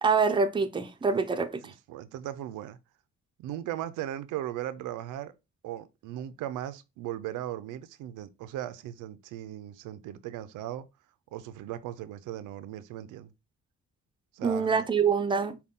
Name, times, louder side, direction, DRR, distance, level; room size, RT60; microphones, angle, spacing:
voice 1, 0.0-1.7 14.4-15.6, right 5 dB, 15° right, 0.5 m, -25 dB
voice 2, 1.6-2.8 3.4-5.3 5.6-10.9 11.3-13.3 14.3-14.8, right 12 dB, 85° right, 0.5 m, -38 dB
5.4 x 2.3 x 3.5 m
cardioid pair, 90°, 30 cm